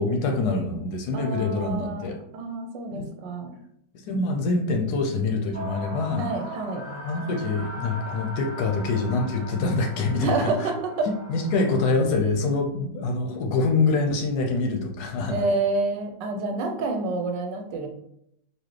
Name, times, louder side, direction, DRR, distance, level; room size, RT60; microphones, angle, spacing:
voice 1, 0.0-2.2 2.9-3.1 4.1-6.3 6.9-10.7 11.1-15.4, left 3 dB, 75° left, 3 dB, 1.1 m, -25 dB
voice 2, 1.1-3.5 6.2-6.9 10.2-11.1 15.3-17.9, right 3 dB, 90° right, 4 dB, 1.3 m, -28 dB
sound 1, 5.5-11.8, equal, 50° right, 1.2 m, -39 dB
4.1 x 2.7 x 3.1 m, 0.76 s
omnidirectional pair, 1.9 m